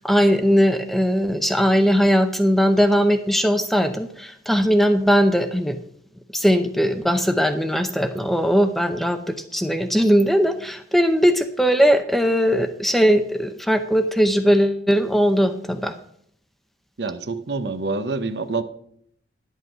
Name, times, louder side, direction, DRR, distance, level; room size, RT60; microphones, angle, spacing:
voice 1, 0.0-5.8 6.3-15.9, equal, ahead, 8 dB, 0.6 m, -19 dB
voice 2, 17.0-18.6, right 3 dB, 60° right, 11 dB, 0.8 m, -26 dB
11.0 x 8.3 x 4.9 m, 0.68 s
head